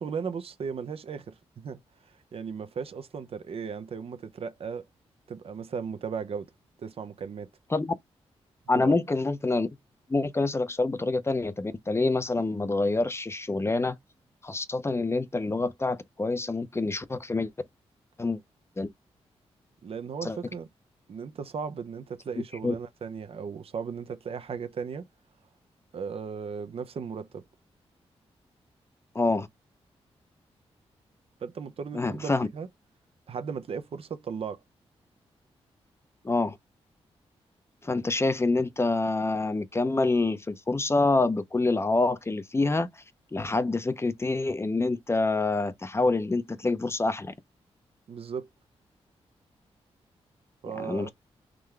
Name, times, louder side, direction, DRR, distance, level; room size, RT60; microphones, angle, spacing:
voice 1, 0.0-1.8 2.3-4.8 5.3-6.5 6.8-7.5 8.7-9.0 19.8-20.7 21.1-25.1 25.9-27.4 31.4-32.7 33.3-34.6 48.1-48.5 50.6-51.1, right 6 dB, 60° right, 0.6 m, -36 dB
voice 2, 8.7-9.7 10.1-13.9 14.4-17.5 18.2-18.4 18.8-18.9 20.2-20.4 22.6-22.7 29.1-29.5 31.9-32.5 36.2-36.6 37.8-42.9 43.3-47.3 50.8-51.1, left 3 dB, 25° left, 0.6 m, -26 dB
3.8 x 3.1 x 3.3 m
cardioid pair, 70°, 11 cm